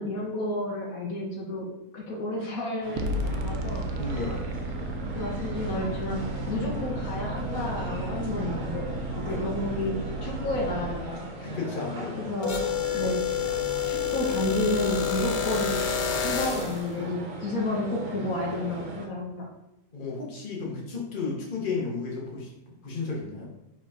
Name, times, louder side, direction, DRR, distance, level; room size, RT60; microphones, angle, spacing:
voice 1, 0.0-3.8 5.1-8.9 9.1-9.9 10.2-11.2 12.2-12.6 12.9-13.2 13.9-15.7 16.1-19.5, left 1 dB, 70° left, -2 dB, 1.6 m, -31 dB
sound 1, 2.8-19.1, right 1 dB, 60° right, 1.6 m, -39 dB
sound 2, 3.0-11.0, right 2 dB, 75° right, 1.1 m, -33 dB
voice 2, 3.9-4.4 9.2-9.4 11.4-12.3 19.9-22.5 22.8-23.5, left 4 dB, 35° left, -3 dB, 1.5 m, -33 dB
sound 3, 12.4-16.8, left 8 dB, 50° left, 1.0 m, -28 dB
5.0 x 4.1 x 4.9 m, 0.86 s
omnidirectional pair, 1.6 m